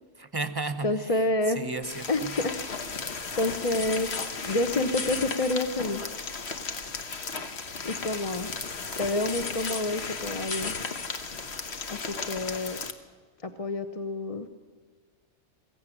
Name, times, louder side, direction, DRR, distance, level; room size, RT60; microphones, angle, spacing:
voice 1, 0.2-2.3, right 3 dB, 20° right, 11 dB, 0.9 m, -34 dB
voice 2, 0.8-1.6 2.1-2.2 2.8-6.1 7.8-8.5 9.0-10.7 11.9-12.8 13.4-14.5, left 2 dB, 35° left, 7 dB, 0.9 m, -29 dB
sound 1, 1.8-12.9, left 4 dB, 65° left, 1.5 m, -35 dB
22.0 x 15.0 x 10.0 m, 1.5 s
omnidirectional pair, 1.2 m